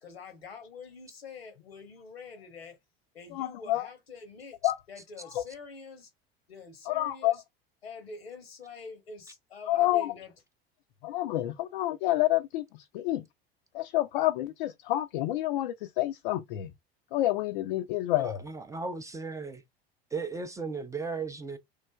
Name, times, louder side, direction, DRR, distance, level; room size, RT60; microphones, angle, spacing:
voice 1, 0.0-2.8 3.1-4.6 4.9-6.1 6.5-7.4 7.8-10.3, left 4 dB, 80° left, 1.0 m, -46 dB
voice 2, 3.3-3.9 4.6-4.8 5.3-5.4 6.9-7.4 9.7-10.1 11.0-13.2 13.7-16.7 17.1-18.4, left 15 dB, 55° left, 0.4 m, -28 dB
voice 3, 18.2-19.6 20.1-21.6, right 4 dB, 10° right, 0.4 m, -36 dB
3.2 x 2.4 x 2.2 m
figure-of-eight pair, 75°, 30 cm